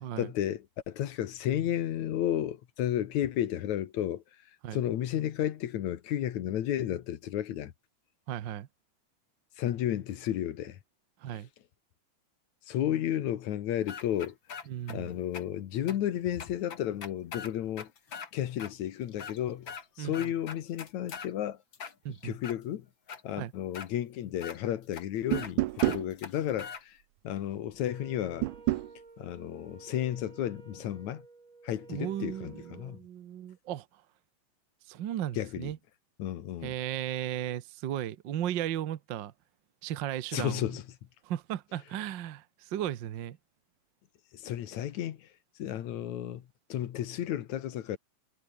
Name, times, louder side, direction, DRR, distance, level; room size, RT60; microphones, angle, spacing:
voice 1, 0.2-4.2 4.7-7.7 9.6-10.8 12.7-14.3 14.9-17.9 18.3-21.6 22.2-22.9 23.2-27.0 27.2-28.5 29.2-31.2 31.6-33.0 35.4-35.7 36.2-36.7 40.3-40.8 44.3-45.3 45.6-46.4 46.7-48.0, left 11 dB, 70° left, 2.6 m, -32 dB
voice 2, 8.3-8.7 11.2-11.5 14.7-15.1 20.0-20.3 22.0-22.3 23.4-23.5 31.9-34.0 34.9-35.8 36.6-39.3 39.8-40.7 41.2-43.4, right 11 dB, 70° right, 1.1 m, -35 dB
sound 1, 13.9-15.0 15.3-15.4 15.9-16.0 16.4-18.3 18.6-18.7 19.1-19.9 20.1-21.3 21.7-22.6 23.1-23.2 23.7-23.9 24.4-24.6 24.9-25.0 25.3-25.5 25.8-26.8, left 6 dB, 40° left, 2.7 m, -42 dB
sound 2, 25.3-26.1 28.4-28.9, right 17 dB, 85° right, 2.2 m, -28 dB
Wind instrument woodwind instrument, 27.8-33.0, right 3 dB, 40° right, 5.2 m, -53 dB
omnidirectional pair, 3.5 m